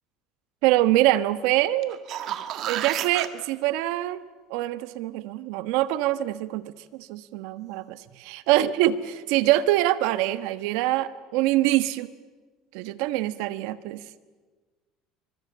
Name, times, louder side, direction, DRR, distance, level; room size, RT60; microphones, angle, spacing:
voice 1, 0.6-2.0 2.7-4.2 4.5-12.1 12.7-14.0, right 15 dB, 80° right, 13 dB, 1.3 m, -24 dB
sound 1, 1.8-3.3 8.1-8.2, right 11 dB, 50° right, 1.8 m, -31 dB
26.5 x 25.0 x 8.8 m, 1.3 s
cardioid pair, 140°, 0 cm